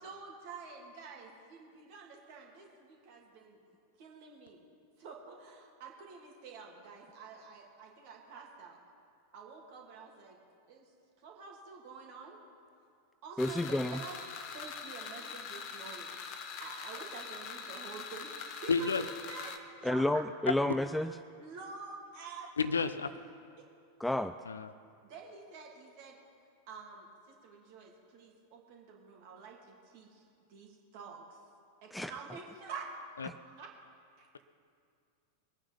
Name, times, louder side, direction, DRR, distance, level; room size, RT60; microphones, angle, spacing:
voice 1, 0.0-3.6 4.0-4.6 5.0-8.8 9.3-10.4 10.7-10.9 11.2-12.4 13.2-16.2 16.6-20.2 21.4-22.5 25.0-26.2 26.7-31.4 31.8-33.7 34.2-34.4, right 5 dB, 45° right, 0 dB, 2.7 m, -48 dB
sound 1, 13.4-19.6, left 6 dB, 40° left, 1.2 m, -43 dB
voice 2, 13.4-14.0 19.8-21.1 24.0-24.4 31.9-32.1, left 1 dB, 5° left, 11 dB, 0.3 m, -30 dB
voice 3, 18.7-19.0 22.6-23.1 24.5-24.7 33.2-33.3, left 5 dB, 70° left, 13 dB, 0.6 m, -30 dB
21.5 x 9.2 x 5.5 m, 2.3 s
figure-of-eight pair, 90°, 0 cm